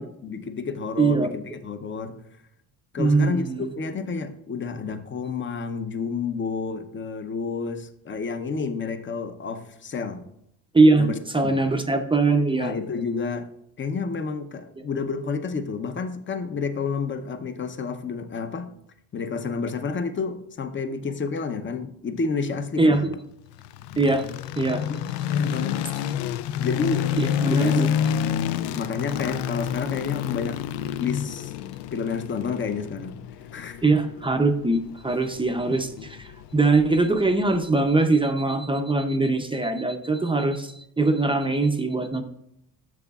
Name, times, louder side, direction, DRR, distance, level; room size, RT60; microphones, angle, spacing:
voice 1, 0.0-2.1 2.9-10.2 11.0-11.6 12.6-13.5 13.8-18.7 19.1-23.1 24.9-25.0 25.3-25.8 26.6-27.1 27.6-27.8 28.7-30.6 31.0-31.5 31.9-33.2 33.5-33.8, left 5 dB, 30° left, 9 dB, 0.7 m, -30 dB
voice 2, 1.0-1.3 3.0-3.7 10.7-11.1 11.3-12.7 22.8-23.0 24.0-24.2 24.6-24.8 27.2-27.9 33.8-36.2 36.5-42.2, right 3 dB, 15° right, 5 dB, 0.6 m, -21 dB
sound 1, 23.5-37.6, left 9 dB, 80° left, 0.5 m, -29 dB
10.5 x 7.1 x 2.4 m, 0.77 s
cardioid pair, 130°, 41 cm